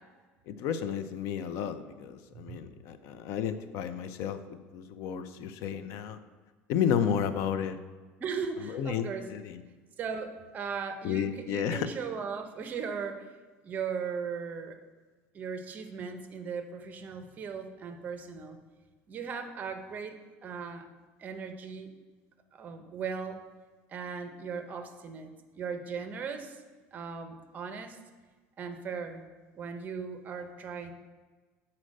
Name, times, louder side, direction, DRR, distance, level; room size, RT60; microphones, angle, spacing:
voice 1, 0.5-6.2 6.7-7.8 8.6-9.6 11.0-11.9, left 8 dB, 65° left, 11 dB, 0.5 m, -32 dB
voice 2, 8.2-9.3 10.0-13.3 13.6-14.8 15.3-18.6 19.1-20.1 20.4-20.9 21.2-21.9 22.5-23.4 23.9-26.6 26.9-28.0 28.6-29.3 29.5-30.9, right 6 dB, 30° right, 8 dB, 0.7 m, -38 dB
7.9 x 4.3 x 6.4 m, 1.4 s
cardioid pair, 150°, 5 cm